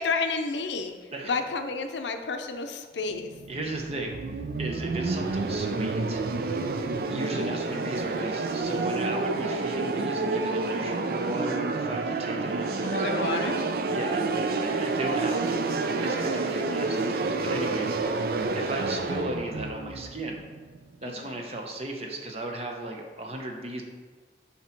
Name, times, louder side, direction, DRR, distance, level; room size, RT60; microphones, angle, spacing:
voice 1, 0.0-1.0 1.2-3.3 7.2-7.5 12.9-13.5 15.3-15.6 18.0-18.4 21.0-21.4, left 4 dB, 80° left, 7 dB, 0.6 m, -31 dB
sound 1, 3.1-20.9, right 3 dB, 55° right, 0.4 m, -29 dB
voice 2, 3.5-6.2 7.1-13.5 13.9-15.4 16.0-20.4 21.0-23.8, right 1 dB, 35° right, 2 dB, 0.8 m, -35 dB
7.3 x 2.9 x 5.8 m, 1.4 s
head